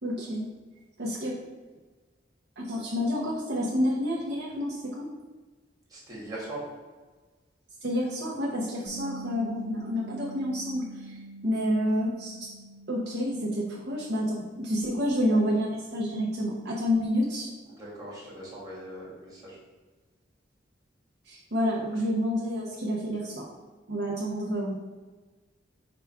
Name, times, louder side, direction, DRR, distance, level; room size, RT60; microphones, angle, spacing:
voice 1, 0.0-0.5 1.0-1.4 2.6-5.1 7.8-11.2 11.4-12.5 12.9-17.5 21.3-23.5 23.9-24.7, equal, 60° right, -5 dB, 0.8 m, -29 dB
voice 2, 5.9-6.6 17.7-19.6, right 1 dB, 20° right, -6 dB, 1.5 m, -40 dB
Bass guitar, 8.9-15.1, right 2 dB, 65° left, 0.5 m, -45 dB
4.8 x 2.4 x 4.5 m, 1.3 s
head